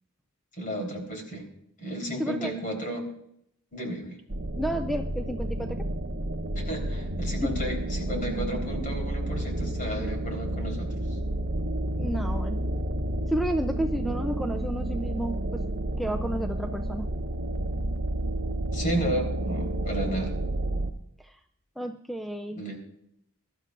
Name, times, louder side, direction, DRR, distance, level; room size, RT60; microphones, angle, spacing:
voice 1, 0.6-1.5 1.8-3.1 3.7-4.2 6.6-10.9 18.7-20.4 22.5-22.8, right 1 dB, 40° left, 2 dB, 3.7 m, -33 dB
voice 2, 2.2-2.5 4.6-5.9 7.4-7.5 12.0-12.6 13.3-15.7 16.0-17.1 21.2-21.4 21.8-22.6, right 1 dB, ahead, 6 dB, 0.4 m, -31 dB
sound 1, 4.3-20.9, right 1 dB, 55° right, 0.9 m, -30 dB
23.0 x 12.0 x 2.5 m, 0.74 s
head